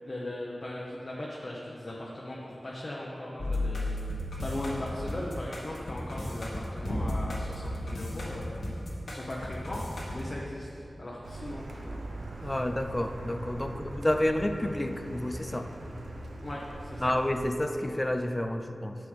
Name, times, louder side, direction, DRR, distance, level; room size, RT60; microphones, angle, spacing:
voice 1, 0.1-4.1 4.4-8.7 9.1-11.9 13.6-14.0 16.4-17.1, left 1 dB, 40° left, -5 dB, 0.9 m, -38 dB
sound 1, 3.4-10.2, left 1 dB, 75° left, 1.2 m, -34 dB
Car, 11.2-17.6, right 1 dB, 85° right, 0.7 m, -41 dB
voice 2, 12.4-15.7 17.0-19.0, left 1 dB, 20° left, 7 dB, 0.5 m, -29 dB
9.8 x 6.0 x 3.3 m, 2.6 s
wide cardioid pair, 60°, 0 cm